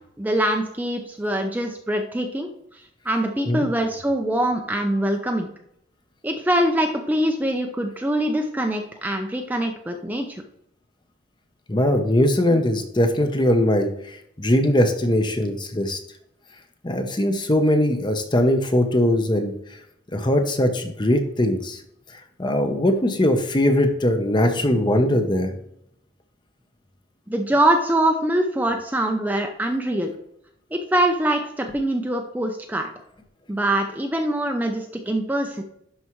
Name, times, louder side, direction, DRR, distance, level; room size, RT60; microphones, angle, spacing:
voice 1, 0.2-5.5 6.2-10.4 27.3-30.1 30.7-32.9 33.5-35.6, right 1 dB, 10° right, 3 dB, 0.5 m, -23 dB
voice 2, 11.7-16.0 16.8-19.5 20.1-21.8 22.1-25.5, left 1 dB, 25° left, 6 dB, 0.8 m, -21 dB
11.5 x 4.8 x 3.1 m, 0.76 s
head